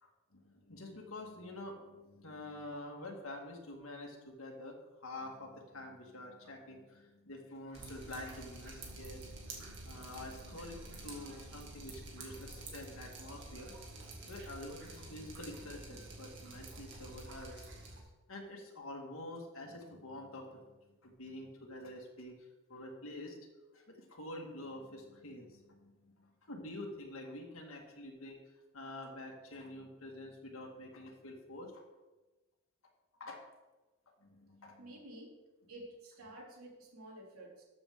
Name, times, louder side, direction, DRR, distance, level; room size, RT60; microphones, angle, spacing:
voice 1, 0.0-9.3 9.8-13.7 14.3-17.7 18.0-20.6 21.0-23.4 23.7-28.4 28.7-31.8 33.2-33.4 34.2-34.8, left 1 dB, 70° left, 0 dB, 1.9 m, -47 dB
Drip, 7.7-18.0, right 2 dB, 55° right, 2.1 m, -49 dB
voice 2, 34.8-35.4 35.7-37.6, right 1 dB, 85° right, -2 dB, 3.1 m, -51 dB
13.5 x 7.1 x 3.7 m, 1.1 s
head